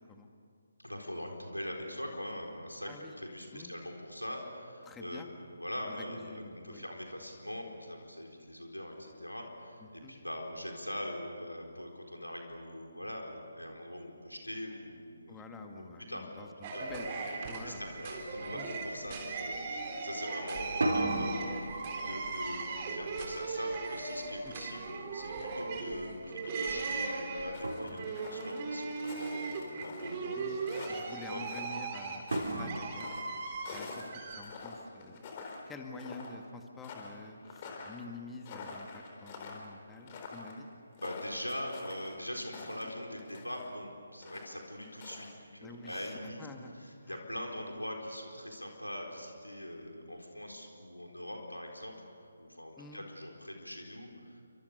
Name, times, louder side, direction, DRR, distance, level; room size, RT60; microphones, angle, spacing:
voice 1, 0.8-5.3 5.6-15.5 15.8-16.9 17.6-31.0 31.3-31.5 32.5-32.7 41.0-46.4 46.8-51.9 52.4-54.4, left 1 dB, 85° left, 2 dB, 4.3 m, -42 dB
voice 2, 4.8-5.3 5.9-6.8 9.8-10.1 15.3-17.8 18.5-18.7 24.4-24.5 30.3-30.6 30.9-33.1 33.4-35.3 35.7-40.7 45.6-46.8 47.0-47.2 52.8-53.0, left 3 dB, 10° left, 3 dB, 2.0 m, -48 dB
sound 1, 16.6-34.4, right 4 dB, 25° right, 3.5 m, -38 dB
sound 2, 18.0-18.2 18.6-19.1 20.6-25.4 27.1-27.2 27.6-28.5 32.3-34.0, right 1 dB, 60° right, 5.8 m, -37 dB
sound 3, 27.5-30.2 30.6-33.2 33.7-35.7 36.0-36.4 36.8-43.7 44.2-45.3 45.6-46.2, left 4 dB, 30° left, 4.0 m, -47 dB
29.5 x 26.0 x 6.8 m, 2.2 s
figure-of-eight pair, 145°, 0 cm